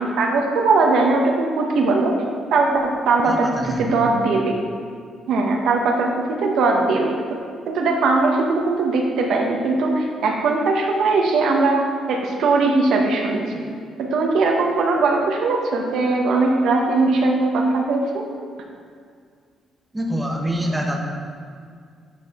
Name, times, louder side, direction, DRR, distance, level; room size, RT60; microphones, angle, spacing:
voice 1, 0.0-2.1 2.5-3.5 3.8-4.5 5.3-7.2 7.7-13.6 14.0-18.2, right 3 dB, 80° right, 1 dB, 0.9 m, -20 dB
voice 2, 3.2-4.0 19.9-21.0, equal, 10° right, 0 dB, 1.0 m, -25 dB
12.0 x 4.4 x 3.6 m, 2.1 s
cardioid pair, 90°, 0 cm